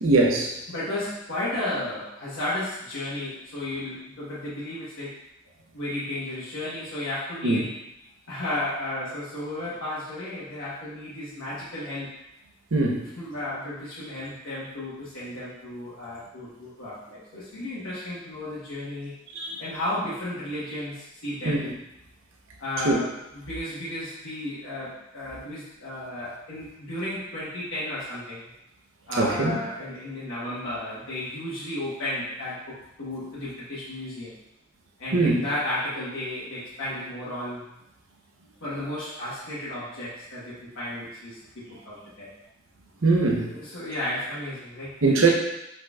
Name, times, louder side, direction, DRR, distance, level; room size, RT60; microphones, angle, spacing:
voice 1, 0.0-0.5 7.4-7.6 12.7-13.1 19.3-19.6 21.4-21.7 22.8-23.0 29.2-29.5 35.1-35.4 43.0-43.5 45.0-45.3, right 3 dB, 80° right, 0 dB, 0.8 m, -21 dB
voice 2, 0.7-5.1 5.7-7.7 8.3-12.1 13.2-19.1 19.6-21.6 22.6-28.5 29.1-34.3 35.0-37.7 38.6-42.3 43.4-45.3, left 1 dB, 80° left, -10 dB, 1.2 m, -33 dB
5.0 x 4.1 x 2.3 m, 0.86 s
head